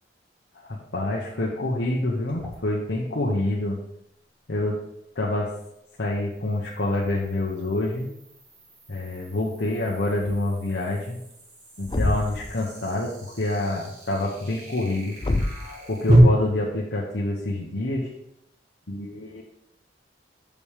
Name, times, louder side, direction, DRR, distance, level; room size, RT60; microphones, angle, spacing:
voice 1, 0.5-3.8 4.5-4.8 5.1-5.5 6.0-8.1 8.9-11.2 11.8-15.2 15.9-18.1 18.9-19.4, left 2 dB, 85° left, -4 dB, 1.1 m, -27 dB
sound 1, 2.3-2.9 6.9-7.6 10.1-10.4 11.3-11.4 12.3-12.7, equal, 10° left, 1.6 m, -45 dB
sound 2, 2.5-2.6 6.0-16.2, right 1 dB, 40° right, 1.9 m, -33 dB
Thump thud, 11.9-12.5 15.2-15.7, left 2 dB, 25° left, 0.4 m, -25 dB
7.0 x 5.3 x 5.0 m, 0.79 s
head